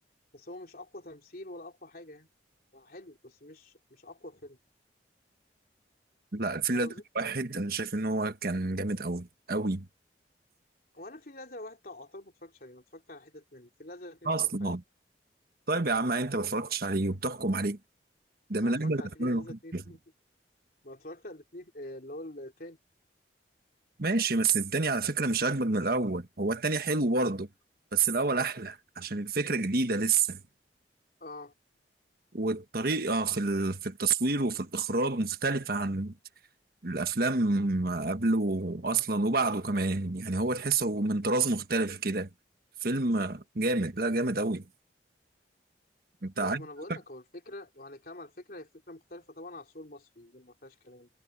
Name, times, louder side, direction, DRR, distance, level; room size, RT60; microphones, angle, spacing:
voice 1, 0.3-2.3 2.7-4.6 6.7-7.0 10.9-14.8 18.6-20.0 20.8-22.8 31.2-31.5 46.4-51.1, left 1 dB, 55° left, 3.4 m, -46 dB
voice 2, 6.3-9.9 14.2-14.8 15.7-17.8 18.5-19.8 24.0-27.5 27.9-30.4 32.3-36.1 36.8-42.3 42.8-44.7 46.2-46.7, right 3 dB, 55° right, 1.4 m, -29 dB
head